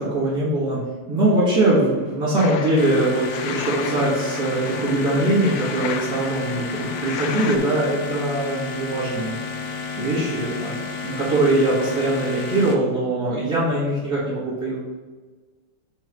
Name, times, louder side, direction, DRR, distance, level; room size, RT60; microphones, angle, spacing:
voice 1, 0.0-9.3 10.0-15.0, right 1 dB, 55° right, -13 dB, 2.6 m, -22 dB
sound 1, 2.4-7.6, left 8 dB, 80° left, 1.3 m, -34 dB
sound 2, 2.8-12.8, left 4 dB, 60° left, 0.9 m, -31 dB
9.2 x 3.2 x 4.6 m, 1.4 s
omnidirectional pair, 2.0 m